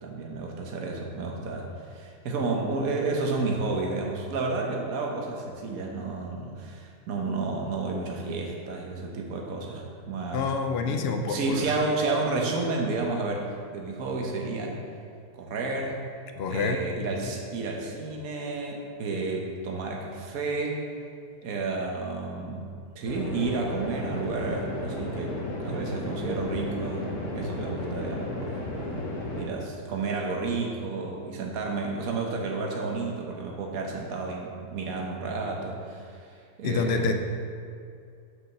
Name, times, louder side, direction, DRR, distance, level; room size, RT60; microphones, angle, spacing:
voice 1, 0.0-10.5 10.8-14.8 15.3-16.0 16.5-20.8 21.4-22.7 22.9-29.0 29.4-36.2 36.6-37.2, right 3 dB, 60° right, 0 dB, 1.4 m, -31 dB
voice 2, 10.3-11.7 16.4-16.8 17.2-17.3 36.6-37.2, left 5 dB, 70° left, 6 dB, 0.6 m, -27 dB
sound 1, 23.1-29.4, left 1 dB, 50° left, 1.5 m, -34 dB
6.2 x 5.1 x 6.7 m, 2.3 s
omnidirectional pair, 1.7 m